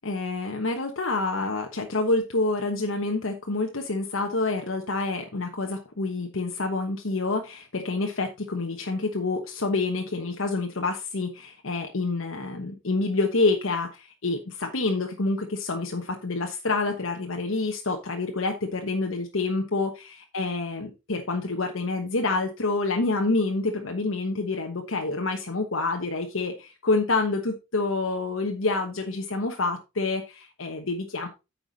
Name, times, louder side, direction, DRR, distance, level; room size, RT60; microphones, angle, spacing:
voice 1, 0.0-31.3, left 3 dB, 75° left, 1.1 m, -27 dB
9.3 x 5.8 x 4.0 m
head